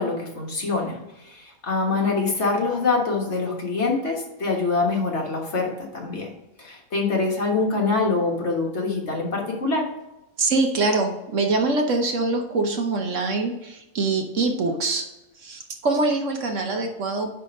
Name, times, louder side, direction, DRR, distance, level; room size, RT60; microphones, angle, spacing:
voice 1, 0.0-6.3 6.6-9.9, left 3 dB, 50° left, -1 dB, 1.7 m, -25 dB
voice 2, 10.4-15.1 15.3-17.3, right 3 dB, 60° right, 4 dB, 1.2 m, -24 dB
10.0 x 3.4 x 5.3 m, 0.94 s
omnidirectional pair, 1.5 m